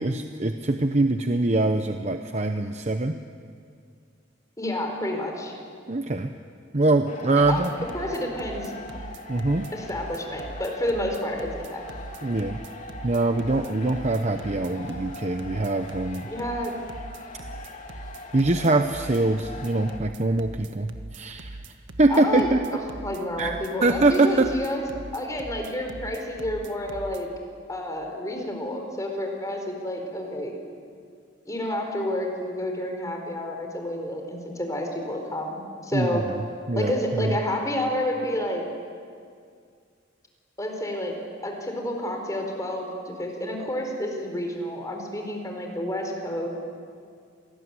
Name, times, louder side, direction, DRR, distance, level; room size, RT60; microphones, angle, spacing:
voice 1, 0.0-3.2 5.9-6.3 6.7-7.7 9.3-9.7 12.2-12.6 13.0-16.3 18.3-21.6 22.0-22.8 23.4-24.5 35.9-36.4 36.7-37.4, right 2 dB, 40° right, 7 dB, 0.9 m, -23 dB
voice 2, 4.6-5.5 7.3-7.6 7.9-8.7 9.7-11.8 16.3-16.7 22.1-22.5 23.0-24.9 25.1-27.3 27.7-30.6 31.5-36.2 36.8-38.6 40.6-41.1 41.4-46.5, left 1 dB, 20° left, 3 dB, 4.4 m, -29 dB
sound 1, 7.1-20.0, left 2 dB, 40° left, 2.6 m, -42 dB
sound 2, 7.4-27.2, right 2 dB, 90° right, 1.5 m, -41 dB
27.0 x 20.0 x 9.8 m, 2.2 s
head